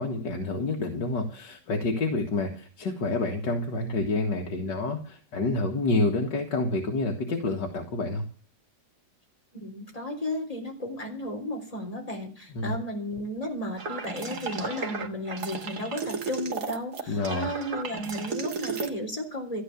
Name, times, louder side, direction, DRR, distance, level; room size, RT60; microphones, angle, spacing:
voice 1, 0.0-8.2 12.5-12.8 17.1-17.5, left 2 dB, 75° left, 1 dB, 2.4 m, -28 dB
voice 2, 9.5-19.6, left 1 dB, 20° left, 3 dB, 3.9 m, -34 dB
sound 1, 13.8-18.9, right 5 dB, 60° right, 2.3 m, -34 dB
14.5 x 11.0 x 7.2 m, 0.39 s
omnidirectional pair, 1.9 m